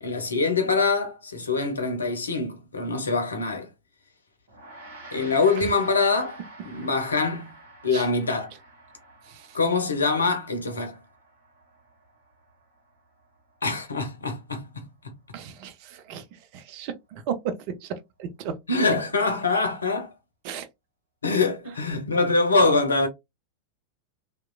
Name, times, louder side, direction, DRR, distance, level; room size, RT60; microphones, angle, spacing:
voice 1, 0.0-3.7 5.1-6.4 6.7-7.5 7.8-8.5 9.5-11.0 13.6-15.1 18.7-20.1 21.2-23.1, left 3 dB, 75° left, 0.6 m, -24 dB
Gong, 4.5-14.0, right 2 dB, 60° right, 1.0 m, -49 dB
voice 2, 9.2-9.6 15.3-18.6 20.4-20.7, right 7 dB, 45° right, 0.5 m, -35 dB
2.9 x 2.2 x 2.2 m
figure-of-eight pair, 90°, 0 cm